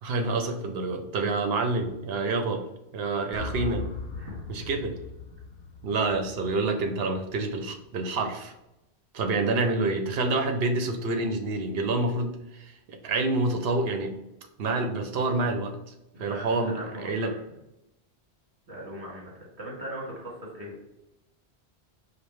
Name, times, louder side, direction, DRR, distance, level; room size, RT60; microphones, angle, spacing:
voice 1, 0.0-2.6 2.9-3.9 4.5-5.0 5.8-8.5 9.1-14.1 14.6-15.8 16.2-17.3, right 3 dB, 70° right, 6 dB, 0.8 m, -27 dB
sound 1, 3.3-7.5, left 4 dB, 50° left, 0.9 m, -39 dB
voice 2, 16.1-17.4 18.7-20.8, right 1 dB, 35° right, -5 dB, 1.8 m, -40 dB
5.1 x 2.2 x 4.5 m, 0.91 s
omnidirectional pair, 1.1 m